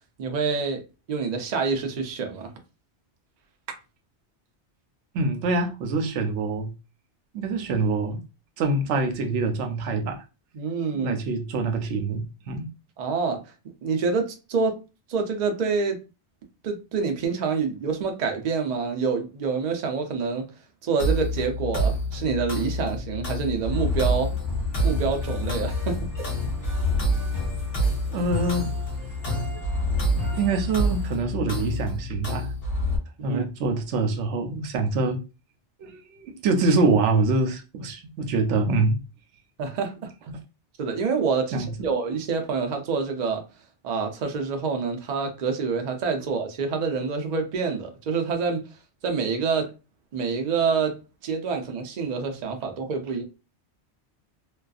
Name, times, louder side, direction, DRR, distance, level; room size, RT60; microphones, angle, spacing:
voice 1, 0.2-0.8 1.1-2.5 10.5-11.2 13.0-13.4 13.8-14.8 15.1-16.0 16.6-20.5 20.8-24.3 24.8-26.3 33.2-33.4 39.6-40.1 40.8-43.4 43.8-48.6 49.0-49.7 50.1-53.2, right 5 dB, 55° right, 0.5 m, -27 dB
voice 2, 5.1-6.7 7.3-8.2 8.6-10.2 10.9-12.7 28.1-28.7 30.3-32.5 33.2-35.2 35.8-39.0 40.3-40.4 41.5-41.7, right 3 dB, 85° right, 0.9 m, -25 dB
sound 1, 21.0-33.0, equal, 60° left, 1.0 m, -28 dB
sound 2, 23.7-31.2, left 3 dB, 30° left, 0.9 m, -34 dB
2.5 x 2.3 x 2.3 m
omnidirectional pair, 1.2 m